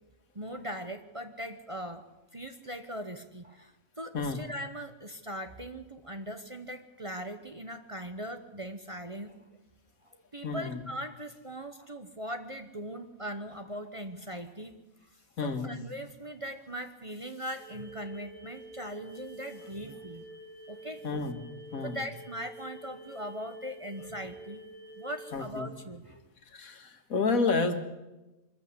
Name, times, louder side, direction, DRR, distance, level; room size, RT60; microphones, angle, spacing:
voice 1, 0.3-2.1 2.3-9.6 10.0-14.8 15.1-20.2 20.7-21.0 21.8-24.6 25.0-26.2, equal, 25° right, 6 dB, 0.9 m, -40 dB
voice 2, 10.4-10.8 15.4-15.7 21.0-21.4 21.7-22.0 25.3-25.7 26.5-27.8, left 4 dB, 75° left, 7 dB, 2.0 m, -30 dB
sound 1, 17.6-25.4, right 1 dB, 55° left, 2.6 m, -48 dB
23.5 x 14.5 x 8.1 m, 1.0 s
omnidirectional pair, 1.5 m